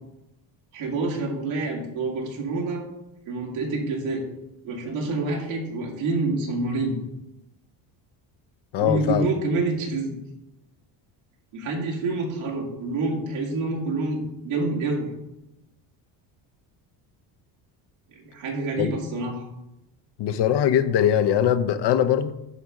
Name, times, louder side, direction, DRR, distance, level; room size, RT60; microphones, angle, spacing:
voice 1, 0.7-2.9 3.3-4.2 4.6-7.0 8.8-10.1 11.5-15.1 18.2-19.4, right 3 dB, 80° right, 2.4 m, -27 dB
voice 2, 8.7-9.3 18.8-18.9 20.2-22.3, left 10 dB, 55° left, 0.8 m, -21 dB
11.0 x 3.6 x 5.2 m
supercardioid pair, 85°, 49 cm